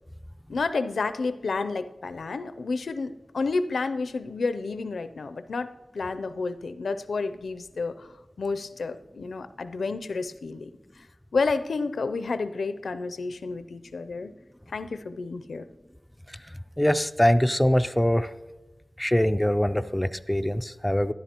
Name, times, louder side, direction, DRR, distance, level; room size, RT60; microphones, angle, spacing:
voice 1, 0.5-10.7 11.0-11.1 11.3-14.3 14.7-15.7, left 4 dB, 90° left, 11 dB, 0.4 m, -30 dB
voice 2, 16.8-18.3 19.0-21.1, equal, 5° left, 9 dB, 0.3 m, -23 dB
13.5 x 11.0 x 2.9 m, 1.1 s
wide cardioid pair, 105°, 0 cm